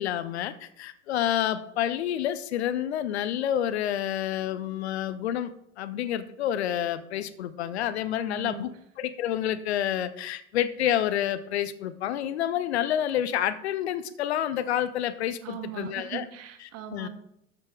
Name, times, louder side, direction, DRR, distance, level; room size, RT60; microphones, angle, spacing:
voice 1, 0.0-5.5 5.8-8.7 9.0-16.2 16.9-17.1, left 11 dB, 65° left, 12 dB, 0.8 m, -28 dB
voice 2, 8.1-8.7 15.4-17.1, right 10 dB, 45° right, 6 dB, 1.7 m, -39 dB
12.5 x 6.7 x 3.5 m, 0.75 s
figure-of-eight pair, 70°, 35 cm